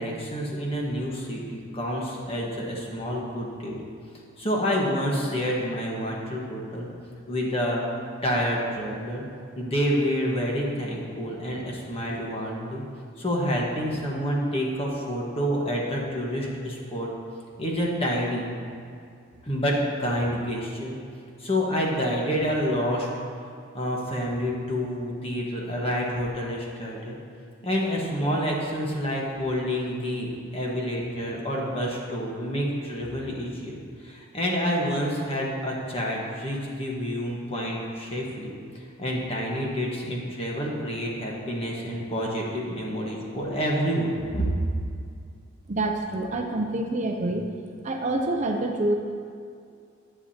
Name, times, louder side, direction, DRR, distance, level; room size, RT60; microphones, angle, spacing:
voice 1, 0.0-3.8 4.4-6.9 7.3-7.8 8.2-9.2 9.6-12.8 13.2-17.1 17.6-18.5 19.4-21.0 21.4-23.1 23.7-27.2 27.6-33.8 34.0-44.6, equal, 30° left, -2 dB, 1.4 m, -28 dB
voice 2, 45.7-47.5 47.8-49.0, right 2 dB, 35° right, 3 dB, 0.5 m, -26 dB
10.5 x 9.3 x 2.8 m, 2.3 s
head